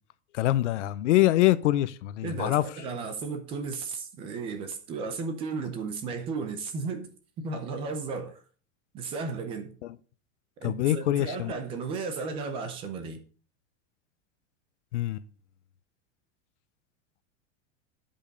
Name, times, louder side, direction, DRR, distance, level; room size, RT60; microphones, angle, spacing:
voice 1, 0.3-2.6 10.6-11.5 14.9-15.2, left 15 dB, 80° left, 0.7 m, -24 dB
voice 2, 2.2-7.1 7.4-8.4 8.9-9.8 10.6-13.2, right 4 dB, 15° right, 0.5 m, -34 dB
8.8 x 5.4 x 5.2 m
supercardioid pair, 180°, 36 cm